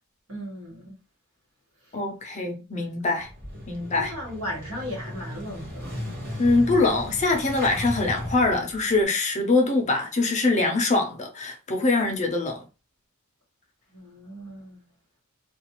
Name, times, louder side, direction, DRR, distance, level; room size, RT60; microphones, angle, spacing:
voice 1, 0.3-1.0 1.8-1.9 3.9-6.1 13.9-14.9, equal, 65° right, 1.3 m, -37 dB
voice 2, 1.9-3.3 3.7-4.1 6.4-12.6, left 3 dB, 30° left, 0.6 m, -23 dB
Motorcycle / Engine starting, 3.2-9.0, left 1 dB, 45° right, 1.3 m, -36 dB
2.4 x 2.3 x 2.9 m
head